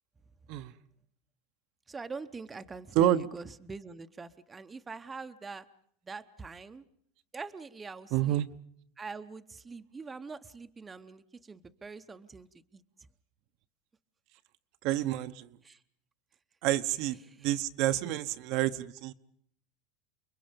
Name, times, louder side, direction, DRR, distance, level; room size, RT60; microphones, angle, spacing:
voice 1, 1.9-5.7 6.0-6.8 7.3-8.4 9.0-12.8 15.6-15.8 17.3-17.5, right 4 dB, 15° right, 10 dB, 0.9 m, -44 dB
voice 2, 8.1-8.5 14.8-15.6 16.6-19.1, right 13 dB, 55° right, 10 dB, 0.9 m, -28 dB
30.0 x 22.0 x 5.2 m, 0.67 s
supercardioid pair, 130°, 0 cm